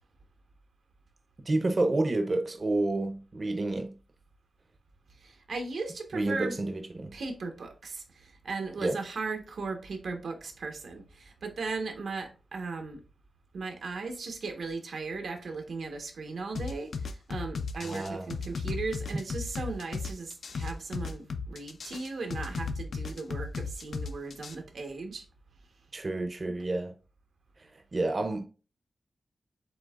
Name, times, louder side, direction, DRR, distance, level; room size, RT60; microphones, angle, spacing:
voice 1, 1.4-4.0 6.1-7.2 8.8-9.0 17.8-18.3 25.9-26.9 27.6-28.4, right 2 dB, 35° right, 0.6 m, -29 dB
voice 2, 5.2-6.6 7.1-13.0 13.5-25.2 26.5-26.6, right 3 dB, 90° right, 1.1 m, -37 dB
sound 1, 16.6-24.6, left 4 dB, 80° left, 0.5 m, -35 dB
7.7 x 2.8 x 2.4 m
wide cardioid pair, 160°, 0 cm